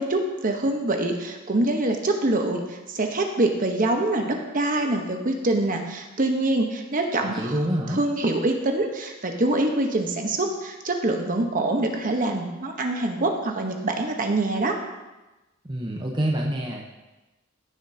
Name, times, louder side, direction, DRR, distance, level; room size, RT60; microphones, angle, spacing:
voice 1, 0.0-7.5 8.0-14.8, right 2 dB, 40° right, 3 dB, 1.0 m, -25 dB
voice 2, 7.1-8.0 15.6-16.8, right 1 dB, 20° right, -1 dB, 0.9 m, -27 dB
15.5 x 7.2 x 2.8 m, 1.1 s
head